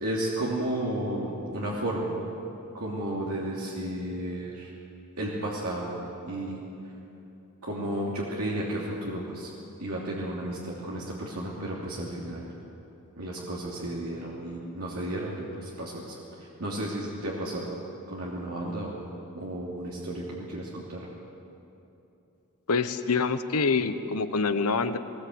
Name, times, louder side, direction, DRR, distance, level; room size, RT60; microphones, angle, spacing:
voice 1, 0.0-2.2 2.7-4.7 5.2-6.6 7.6-9.5 9.8-12.4 13.2-17.8 18.1-19.1 19.3-21.1, right 1 dB, 75° right, -5 dB, 3.0 m, -33 dB
voice 2, 22.7-25.0, left 4 dB, 75° left, 10 dB, 1.1 m, -26 dB
21.5 x 20.0 x 8.0 m, 2.9 s
head